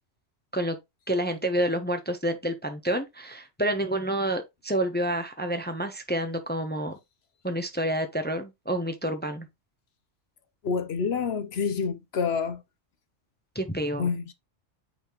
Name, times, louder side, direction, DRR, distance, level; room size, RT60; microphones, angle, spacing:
voice 1, 1.1-7.0 7.4-9.5 13.5-14.1, right 1 dB, 10° left, 0.7 m, -28 dB
voice 2, 10.6-12.6 14.0-14.3, left 5 dB, 60° left, 1.1 m, -28 dB
8.8 x 4.2 x 3.0 m
omnidirectional pair, 1.2 m